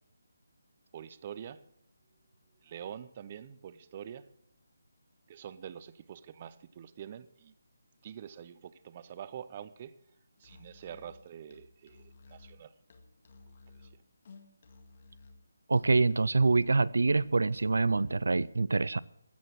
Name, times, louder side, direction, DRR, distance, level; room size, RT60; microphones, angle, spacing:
voice 1, 0.9-1.6 2.6-4.3 5.3-7.5 8.0-10.0 10.4-12.7 13.8-13.9, right 9 dB, 25° right, 0.6 m, -46 dB
Musical instrument, 10.4-18.3, left 3 dB, 40° left, 1.9 m, -56 dB
voice 2, 15.7-19.0, right 3 dB, 80° right, 0.5 m, -25 dB
15.5 x 6.3 x 9.2 m
hypercardioid pair, 170°, 0 cm